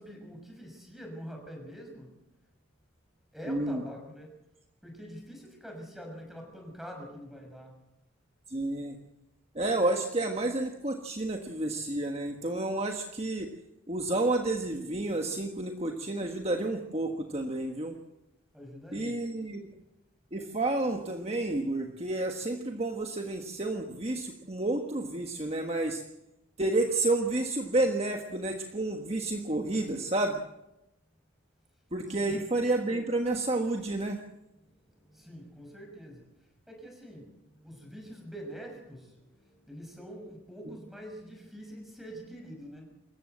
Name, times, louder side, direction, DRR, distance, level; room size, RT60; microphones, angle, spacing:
voice 1, 0.0-2.1 3.3-4.3 4.8-7.7 18.5-19.2 32.1-32.4 35.1-36.2 36.7-37.3 37.6-39.2 39.7-42.9, equal, ahead, 2 dB, 5.9 m, -45 dB
voice 2, 3.5-3.8 8.5-8.9 9.5-13.5 13.9-17.9 18.9-19.7 20.3-26.0 26.6-30.4 31.9-34.2, right 2 dB, 30° right, 3 dB, 1.4 m, -30 dB
26.5 x 15.0 x 7.9 m, 0.91 s
head